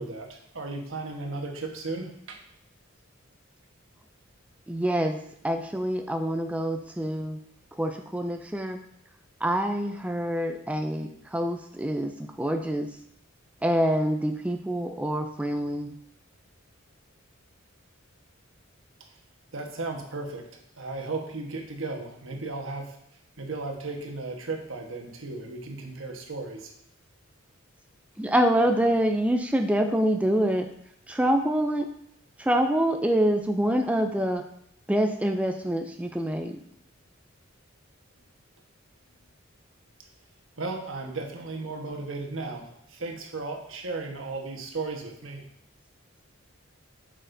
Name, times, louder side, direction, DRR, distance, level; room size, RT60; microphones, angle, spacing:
voice 1, 0.0-2.4 19.5-20.5 20.8-23.0 23.4-26.7 40.6-45.4, right 3 dB, 75° right, 2 dB, 1.2 m, -35 dB
voice 2, 4.7-5.2 5.4-7.4 7.8-8.8 9.4-12.9 13.6-15.9 28.2-30.7 31.1-31.9 32.4-34.4 34.9-36.6, right 1 dB, 5° right, 5 dB, 0.3 m, -26 dB
7.9 x 6.4 x 2.6 m, 0.73 s
head